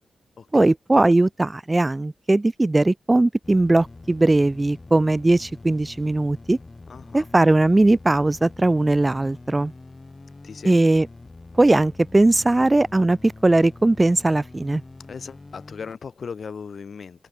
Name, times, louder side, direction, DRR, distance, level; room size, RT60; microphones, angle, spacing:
voice 1, 0.5-6.6 7.1-9.7 10.6-11.1 11.6-14.8, right 2 dB, 15° right, 0.5 m, -19 dB
sound 1, 3.4-15.9, left 3 dB, 25° left, 4.9 m, -44 dB
voice 2, 6.9-7.2 10.4-10.8 15.1-17.3, left 6 dB, 55° left, 1.8 m, -37 dB
open air
wide cardioid pair, 160°, 0 cm